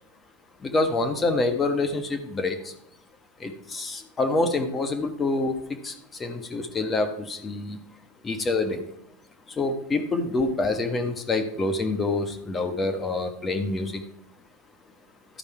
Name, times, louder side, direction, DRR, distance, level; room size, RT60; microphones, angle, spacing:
voice 1, 0.6-2.7 3.4-5.9 6.2-7.8 8.2-8.8 9.6-14.0, left 2 dB, 25° left, 7 dB, 1.1 m, -26 dB
12.5 x 5.2 x 4.7 m, 0.72 s
hypercardioid pair, 90°, 0 cm